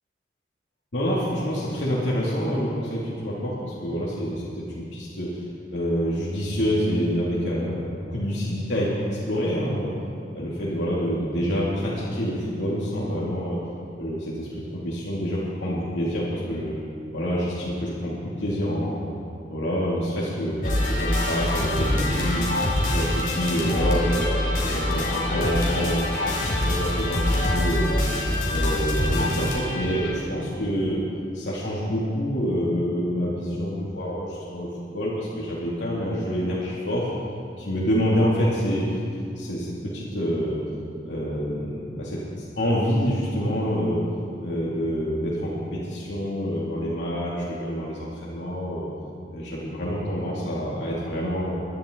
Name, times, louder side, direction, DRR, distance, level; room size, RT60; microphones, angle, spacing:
voice 1, 0.9-5.3 5.7-9.9 10.3-13.6 14.0-16.8 17.1-19.0 19.5-22.6 22.9-24.3 24.6-26.1 26.5-28.0 28.5-31.0 31.3-37.1 37.6-38.9 39.3-40.6 41.1-42.2 42.6-44.0 44.4-48.9 49.3-51.5, equal, 85° left, -8 dB, 2.7 m, -27 dB
sound 1, 20.6-30.1, left 1 dB, 50° left, 3.7 m, -25 dB
23.0 x 11.5 x 4.0 m, 2.5 s
head